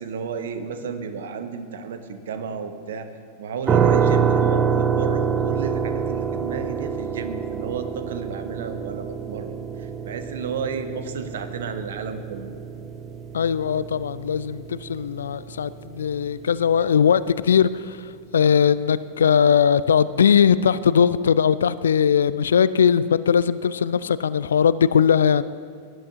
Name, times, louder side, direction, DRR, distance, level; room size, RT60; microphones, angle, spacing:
voice 1, 0.0-3.1 3.4-12.5, right 5 dB, 60° right, 8 dB, 0.9 m, -32 dB
sound 1, 3.7-16.5, right 7 dB, 25° right, 0.6 m, -26 dB
voice 2, 13.3-18.0 18.3-25.4, left 7 dB, 65° left, 17 dB, 0.3 m, -19 dB
18.5 x 11.0 x 2.8 m, 2.2 s
figure-of-eight pair, 90°, 0 cm